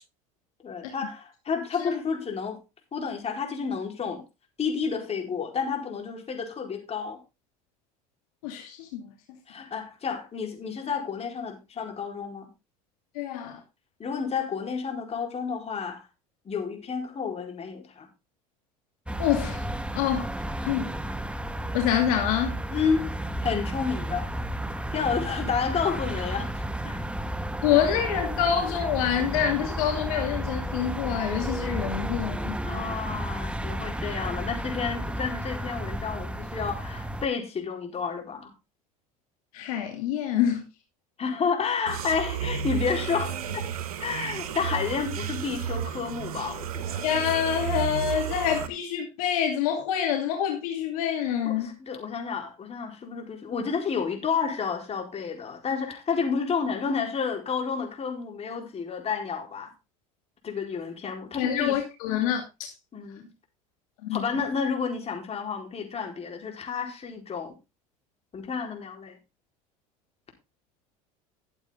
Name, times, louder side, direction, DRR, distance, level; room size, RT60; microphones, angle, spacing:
voice 1, 0.6-2.6 2.9-4.2 4.6-7.2 9.5-12.5 14.0-16.0 16.4-18.1 22.7-23.2 23.4-24.3 24.9-26.5 26.8-27.0 32.6-38.5 41.2-43.6 44.0-47.0 51.4-59.7 60.4-61.8 62.9-63.3 64.1-67.5 68.3-69.2, left 6 dB, 35° left, 4.4 m, -30 dB
voice 2, 8.4-9.0 13.1-13.6 19.2-19.6 19.9-20.3 20.6-20.9 21.7-22.6 27.6-32.6 39.5-40.6 47.0-51.8 61.4-62.7 64.0-64.2, left 9 dB, 75° left, 2.6 m, -26 dB
sound 1, 19.1-37.3, right 1 dB, 5° right, 1.1 m, -32 dB
sound 2, 41.9-48.7, right 8 dB, 85° right, 1.2 m, -32 dB
12.5 x 8.0 x 3.8 m
hypercardioid pair, 80°, 19 cm